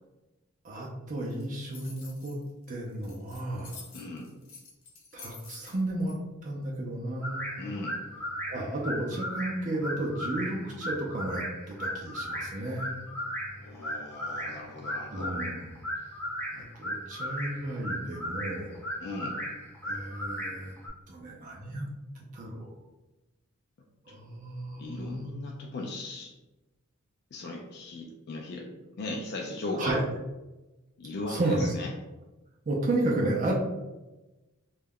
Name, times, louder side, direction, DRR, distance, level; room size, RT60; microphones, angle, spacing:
voice 1, 0.6-2.4 2.7-3.8 5.1-6.2 6.4-7.4 8.5-12.9 15.1-15.6 16.5-18.8 19.8-20.7 21.1-21.9 22.1-22.7 24.1-25.2 29.8-30.0 31.3-31.7 32.7-33.5, right 1 dB, 40° right, -2 dB, 0.4 m, -32 dB
sound 1, 1.3-6.1, left 4 dB, 70° left, 0.7 m, -49 dB
voice 2, 3.9-4.3 7.6-8.0 13.6-15.4 19.0-19.4 24.1-24.2 24.8-26.3 27.3-28.7 29.0-30.0 31.0-31.9, left 2 dB, 55° left, 0 dB, 0.3 m, -37 dB
sound 2, 7.2-20.9, equal, 10° left, 0.6 m, -36 dB
2.3 x 2.1 x 3.4 m, 1.1 s
head